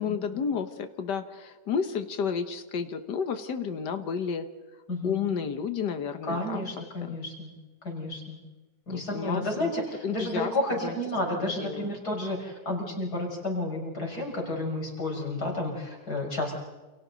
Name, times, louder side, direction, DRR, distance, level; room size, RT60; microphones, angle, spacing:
voice 1, 0.0-4.5 5.0-6.6 7.0-7.1 8.9-9.7 10.0-10.5 10.8-11.0 11.2-11.9, left 6 dB, 90° left, 8 dB, 1.9 m, -31 dB
voice 2, 6.2-7.5 7.8-8.4 8.9-16.6, left 1 dB, 70° left, 0 dB, 6.7 m, -31 dB
29.5 x 28.5 x 4.1 m, 1.2 s
omnidirectional pair, 1.8 m